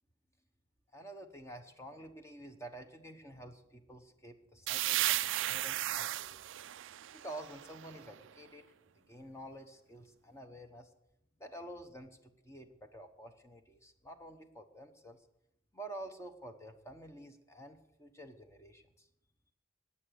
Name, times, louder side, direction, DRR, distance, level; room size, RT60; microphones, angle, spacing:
voice 1, 0.9-6.4 7.1-8.6 8.9-10.9 11.4-15.2 15.7-19.1, right 1 dB, 15° left, 7 dB, 1.0 m, -49 dB
sound 1, 4.7-8.3, right 15 dB, 60° right, 0.4 m, -35 dB
19.0 x 7.1 x 6.6 m, 0.81 s
head